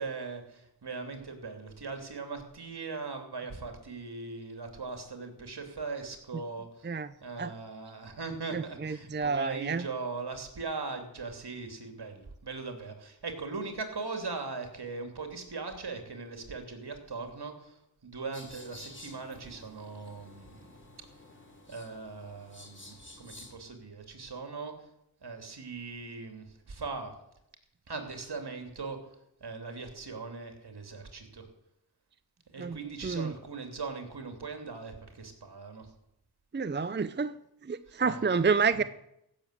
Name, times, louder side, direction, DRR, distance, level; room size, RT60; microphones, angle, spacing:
voice 1, 0.0-6.9 7.2-20.7 21.7-24.9 25.2-27.1 27.9-29.1 29.4-31.5 32.5-35.9 37.9-38.2, right 4 dB, 60° right, 5 dB, 3.0 m, -40 dB
voice 2, 8.5-9.9 32.6-32.8 33.0-33.3 36.5-37.3 37.6-38.8, right 5 dB, 25° right, 13 dB, 0.6 m, -29 dB
sound 1, 18.3-23.5, left 2 dB, 25° left, 3.2 m, -51 dB
15.5 x 7.2 x 8.3 m, 0.81 s
cardioid pair, 45°, 43 cm